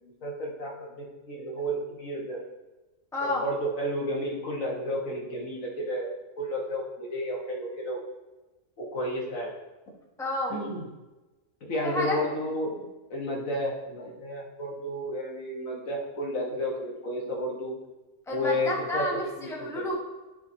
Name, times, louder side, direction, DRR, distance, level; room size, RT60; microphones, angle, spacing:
voice 1, 0.0-2.4 3.2-8.0 8.8-9.5 10.5-10.9 11.6-17.7 18.3-19.8, equal, 75° left, -2 dB, 1.8 m, -32 dB
voice 2, 3.1-3.4 10.2-10.5 11.8-12.2 18.3-20.0, left 1 dB, ahead, -3 dB, 1.0 m, -30 dB
11.5 x 5.7 x 2.8 m, 1.1 s
omnidirectional pair, 1.4 m